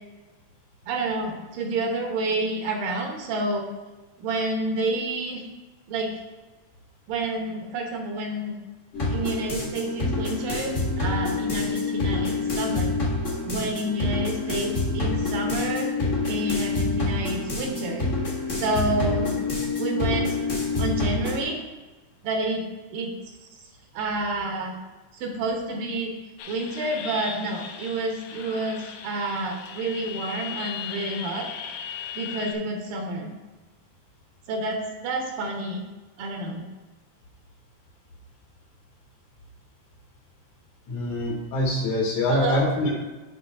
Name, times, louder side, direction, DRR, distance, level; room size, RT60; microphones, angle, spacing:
voice 1, 0.9-3.6 4.2-5.5 5.9-6.2 7.1-8.6 9.1-12.9 13.4-15.9 16.2-18.0 18.5-19.3 19.8-20.4 20.8-21.6 22.2-22.7 22.9-23.3 23.9-24.8 25.1-26.1 26.5-31.5 32.1-33.3 34.5-35.9 36.2-36.7 42.3-42.7, right 2 dB, 75° right, 1 dB, 2.7 m, -29 dB
sound 1, 8.9-21.4, left 3 dB, 45° left, 0.9 m, -27 dB
sound 2, 26.4-32.5, left 7 dB, 85° left, 2.5 m, -37 dB
voice 2, 40.9-42.9, left 1 dB, 65° left, -1 dB, 2.1 m, -25 dB
7.8 x 3.5 x 5.9 m, 1.2 s
omnidirectional pair, 4.2 m